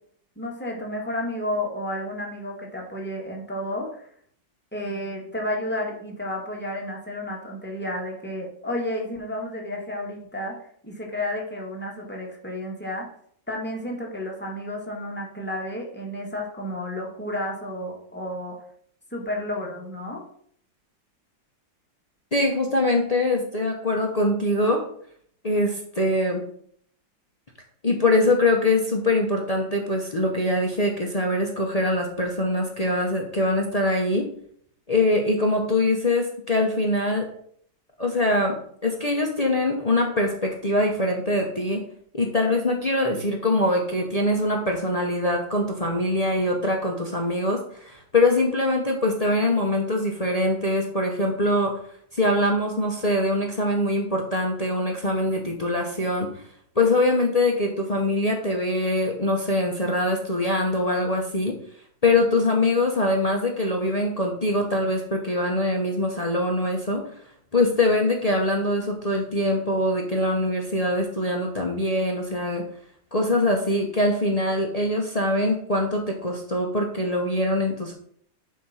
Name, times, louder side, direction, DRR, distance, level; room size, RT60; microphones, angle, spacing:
voice 1, 0.3-4.1 4.7-10.6 10.8-13.1 13.5-18.6 19.1-20.2, left 1 dB, 5° left, -2 dB, 1.3 m, -31 dB
voice 2, 22.3-24.8 25.4-26.4 27.8-34.3 34.9-37.3 38.0-38.5 38.8-41.8 42.1-51.7 52.1-56.3 56.8-61.5 62.0-67.0 67.5-72.6 73.1-77.9, left 1 dB, 35° left, 0 dB, 0.6 m, -23 dB
8.0 x 3.6 x 5.6 m, 0.64 s
omnidirectional pair, 2.1 m